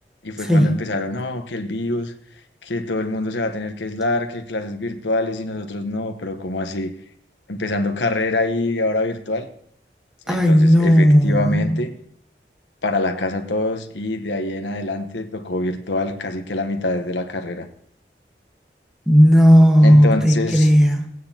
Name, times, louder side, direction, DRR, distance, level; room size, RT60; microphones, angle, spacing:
voice 1, 0.2-2.1 2.6-6.9 7.5-9.5 10.3-11.9 12.8-17.7 19.8-20.7, left 2 dB, 90° left, 1.0 m, -25 dB
voice 2, 10.3-11.4 19.1-21.1, equal, 5° right, 1.2 m, -13 dB
17.0 x 9.4 x 2.8 m
head